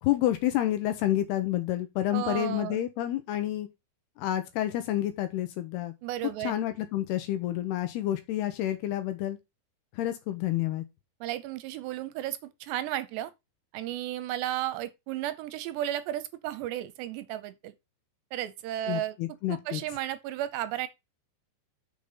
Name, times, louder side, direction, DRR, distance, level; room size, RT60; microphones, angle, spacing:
voice 1, 0.0-3.7 4.2-5.9 6.4-9.4 9.9-10.8 18.9-19.8, left 13 dB, 75° left, 2.7 m, -29 dB
voice 2, 2.1-2.8 6.0-6.7 11.2-13.3 13.7-17.7 18.3-19.2 19.5-20.9, right 13 dB, 80° right, 2.7 m, -33 dB
6.5 x 5.2 x 5.6 m
omnidirectional pair, 5.2 m